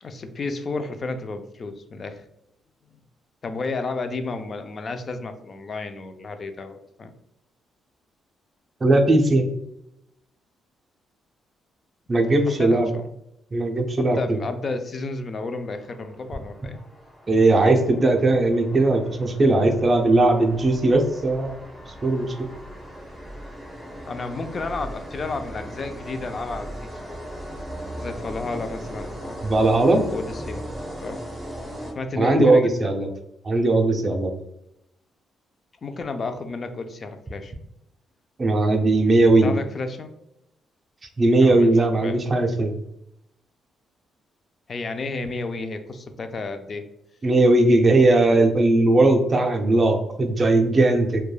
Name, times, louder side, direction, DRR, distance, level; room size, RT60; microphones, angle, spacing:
voice 1, 0.0-2.2 2.9-3.0 3.4-7.1 12.2-13.1 14.0-16.8 24.1-27.2 28.0-29.4 30.0-30.7 31.0-31.3 31.8-32.9 35.8-37.5 39.4-40.1 41.4-42.2 44.7-46.9, left 3 dB, 40° left, 8 dB, 0.3 m, -32 dB
voice 2, 8.8-9.4 12.1-12.9 13.5-14.4 17.3-21.6 22.0-22.5 29.4-30.0 32.2-33.1 33.4-34.3 38.4-39.5 41.2-42.7 47.2-51.2, right 2 dB, 30° right, 3 dB, 0.5 m, -18 dB
sound 1, 15.6-32.4, equal, ahead, 0.7 m, -38 dB
3.1 x 2.2 x 2.2 m, 0.83 s
cardioid pair, 90°, 0 cm